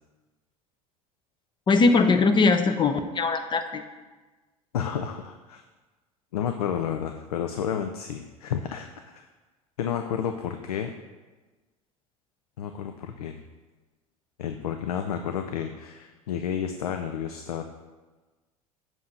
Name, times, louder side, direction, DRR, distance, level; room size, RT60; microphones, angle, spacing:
voice 1, 1.7-3.8, left 3 dB, 25° left, 8 dB, 0.6 m, -21 dB
voice 2, 4.7-5.6 6.3-9.2 9.8-10.9 12.6-13.4 14.4-17.6, left 8 dB, 80° left, 6 dB, 0.4 m, -31 dB
7.1 x 2.7 x 5.8 m, 1.3 s
hypercardioid pair, 75°, 19 cm